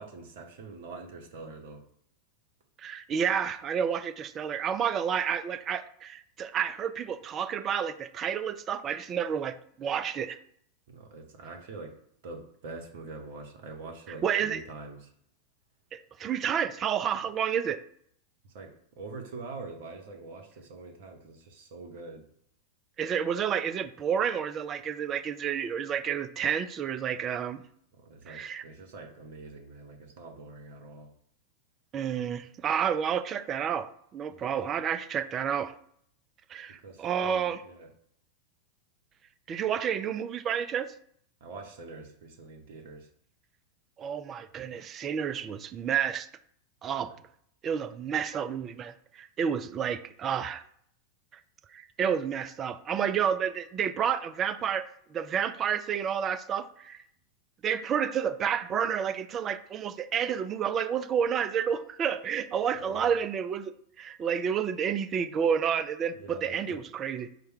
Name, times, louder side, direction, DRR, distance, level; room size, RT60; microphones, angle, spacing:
voice 1, 0.0-1.8 10.9-11.9 12.2-15.1 18.4-18.7 19.0-22.2 28.0-31.1 34.3-34.5 36.8-37.9 41.4-43.1 47.0-47.1 62.7-63.2 66.1-66.8, right 3 dB, 50° right, 2 dB, 0.8 m, -44 dB
voice 2, 2.8-10.4 14.2-14.6 15.9-17.8 23.0-27.6 28.3-28.6 31.9-33.9 34.1-35.7 36.5-37.6 39.5-40.9 44.0-46.3 46.8-47.1 47.6-50.6 51.7-57.0 57.6-63.7 64.0-67.3, right 8 dB, 30° right, 11 dB, 0.3 m, -30 dB
4.6 x 2.1 x 4.6 m, 0.66 s
figure-of-eight pair, 90°, 0 cm